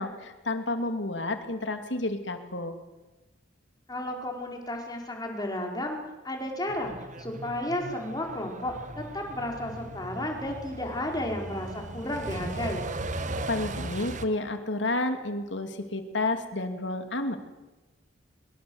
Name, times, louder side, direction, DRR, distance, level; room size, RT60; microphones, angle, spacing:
voice 1, 0.0-2.8 13.5-17.4, left 2 dB, 70° left, 7 dB, 2.8 m, -30 dB
voice 2, 3.9-6.0 6.2-6.9 7.2-12.9, left 1 dB, 20° left, 2 dB, 4.9 m, -33 dB
Truck, 6.7-14.3, right 2 dB, 40° right, 1.6 m, -38 dB
23.5 x 23.0 x 8.1 m, 1.1 s
head